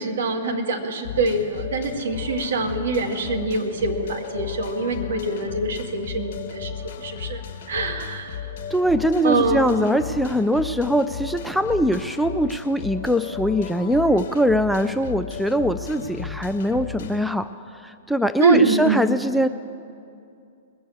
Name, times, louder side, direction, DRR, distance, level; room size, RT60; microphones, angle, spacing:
voice 1, 0.0-6.7 7.0-7.4 7.7-8.4 9.2-9.9 16.0-16.1 18.4-19.0, right 3 dB, 60° right, 3 dB, 1.5 m, -24 dB
sound 1, 1.0-17.3, left 8 dB, 45° left, 1.6 m, -35 dB
voice 2, 8.7-17.5 17.8-19.5, equal, ahead, 10 dB, 0.3 m, -22 dB
20.0 x 7.0 x 8.3 m, 2.5 s
figure-of-eight pair, 110°, 0 cm